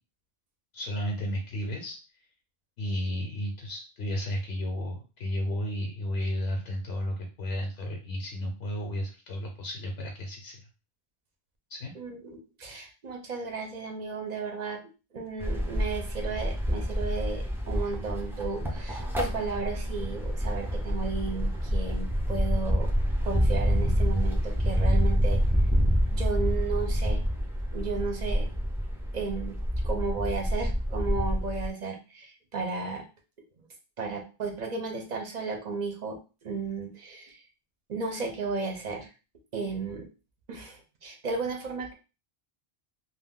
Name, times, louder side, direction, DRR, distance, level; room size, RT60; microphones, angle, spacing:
voice 1, 0.7-2.0 2.8-10.7 11.7-11.9, equal, 80° left, 1 dB, 0.9 m, -33 dB
voice 2, 11.9-14.8 15.1-22.9 23.2-25.4 26.1-27.2 27.7-28.5 29.1-29.6 29.8-33.1 34.0-37.4 37.9-39.1 39.5-40.1 40.5-41.9, right 4 dB, 50° right, 4 dB, 0.6 m, -34 dB
sound 1, 15.4-31.7, equal, 5° right, 0.3 m, -27 dB
2.3 x 2.2 x 3.5 m, 0.31 s
omnidirectional pair, 1.0 m